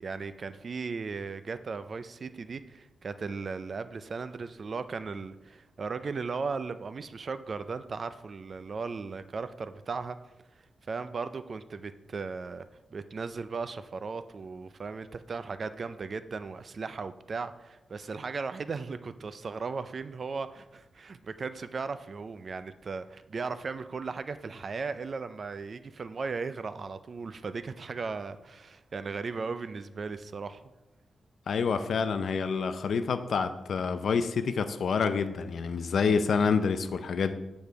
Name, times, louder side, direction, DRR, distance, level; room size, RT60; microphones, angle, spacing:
voice 1, 0.0-10.2 10.9-12.6 12.9-30.6, right 4 dB, 45° right, 12 dB, 0.4 m, -37 dB
voice 2, 31.5-37.3, left 5 dB, 65° left, 10 dB, 0.5 m, -27 dB
8.7 x 5.3 x 4.6 m, 1.0 s
wide cardioid pair, 130°, 0 cm